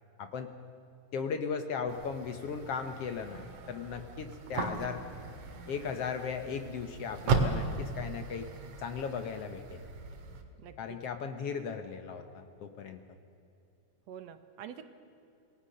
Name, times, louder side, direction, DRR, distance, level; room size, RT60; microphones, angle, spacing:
voice 1, 0.2-0.5 1.1-5.0 5.7-8.5 8.8-9.8 10.8-13.0, left 6 dB, 65° left, 8 dB, 1.8 m, -37 dB
sound 1, 1.9-10.4, right 4 dB, 85° right, 3.3 m, -36 dB
voice 2, 10.6-11.0 14.1-14.9, right 9 dB, 70° right, 10 dB, 2.0 m, -46 dB
27.5 x 19.0 x 6.5 m, 2.8 s
omnidirectional pair, 3.4 m